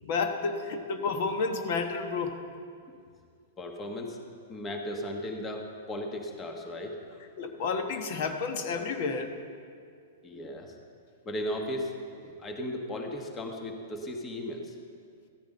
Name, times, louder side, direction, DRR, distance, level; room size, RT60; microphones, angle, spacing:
voice 1, 0.0-2.4 7.4-9.3, left 4 dB, 55° left, 6 dB, 1.2 m, -30 dB
voice 2, 3.6-4.2 4.5-7.2 10.2-10.7 11.2-12.0 12.2-14.7, left 1 dB, 20° left, 3 dB, 1.4 m, -36 dB
14.0 x 9.3 x 5.4 m, 2.2 s
hypercardioid pair, 120°, 0 cm